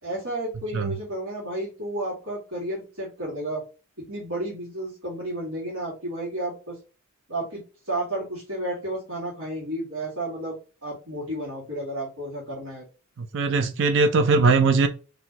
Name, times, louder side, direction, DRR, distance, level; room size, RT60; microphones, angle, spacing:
voice 1, 0.0-3.6 4.1-6.8 7.3-12.8, right 1 dB, 80° right, 2.0 m, -32 dB
voice 2, 13.2-14.9, right 4 dB, 60° right, 0.5 m, -20 dB
4.4 x 3.2 x 2.9 m
head